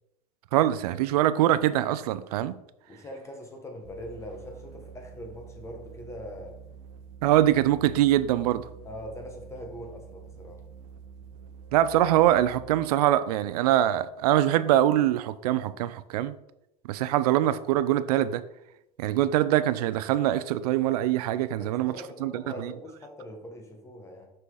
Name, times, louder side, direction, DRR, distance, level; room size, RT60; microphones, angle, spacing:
voice 1, 0.5-2.6 7.2-8.7 11.7-16.4 16.9-18.4 19.0-22.7, right 13 dB, 80° right, 0.5 m, -23 dB
voice 2, 2.9-6.6 8.8-10.6 21.6-24.3, left 1 dB, 15° left, 1.3 m, -42 dB
sound 1, 3.8-13.0, right 6 dB, 60° right, 1.0 m, -47 dB
6.1 x 5.7 x 3.9 m
supercardioid pair, 145°, 19 cm